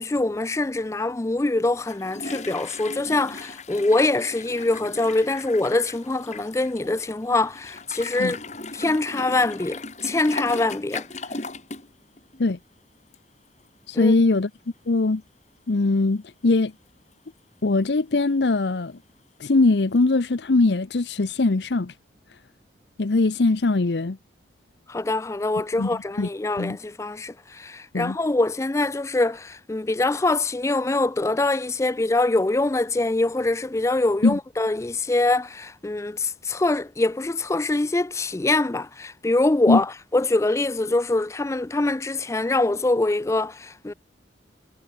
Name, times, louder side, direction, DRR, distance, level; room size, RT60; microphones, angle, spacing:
voice 1, 0.0-8.4 8.7-11.1 13.9-14.1 24.9-43.9, left 2 dB, 15° left, 0.4 m, -24 dB
sound 1, 1.7-11.9 12.2-12.4 13.1-13.2 13.6-13.7 20.0-20.1, left 3 dB, 40° left, 3.9 m, -37 dB
voice 2, 13.9-14.5 14.9-15.2 15.7-16.7 17.6-19.0 19.4-21.9 23.0-24.2 25.8-25.9 26.2-26.3 26.6-26.8 27.9-28.2 34.2-34.4 39.7-39.8, left 3 dB, 70° left, 0.7 m, -21 dB
head